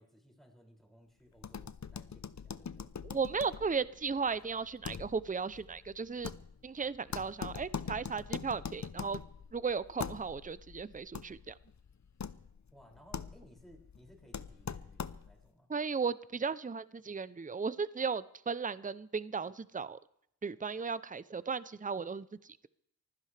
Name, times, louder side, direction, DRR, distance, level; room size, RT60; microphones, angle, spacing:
voice 1, 0.0-2.9 12.7-15.7, equal, ahead, 0 dB, 6.0 m, -60 dB
sound 1, 1.4-15.5, left 6 dB, 50° left, 0.7 m, -43 dB
voice 2, 3.0-6.3 6.6-9.2 9.5-11.5 15.7-20.0 20.4-22.3, right 5 dB, 20° right, 17 dB, 0.6 m, -35 dB
24.0 x 15.5 x 3.4 m, 0.75 s
cardioid pair, 40°, 37 cm